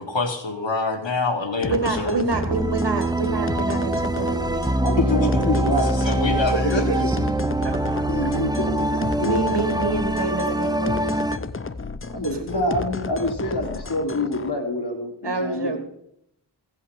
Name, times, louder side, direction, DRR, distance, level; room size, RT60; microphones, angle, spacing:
voice 1, 0.0-2.2 5.1-5.2 5.9-7.1, left 3 dB, 85° left, 3 dB, 2.1 m, -26 dB
sound 1, 1.6-14.5, left 4 dB, 30° left, 0.7 m, -33 dB
voice 2, 1.7-4.7 7.1-7.2 7.6-7.8 9.2-11.1 12.1-12.4 15.2-15.8, right 3 dB, 65° right, 5 dB, 2.1 m, -27 dB
sound 2, 2.3-11.4, right 1 dB, 10° right, 0.6 m, -24 dB
voice 3, 4.8-7.3 7.9-9.7 12.1-15.8, left 1 dB, 65° left, 1 dB, 3.3 m, -27 dB
16.0 x 5.7 x 7.2 m, 0.75 s
wide cardioid pair, 65°, 43 cm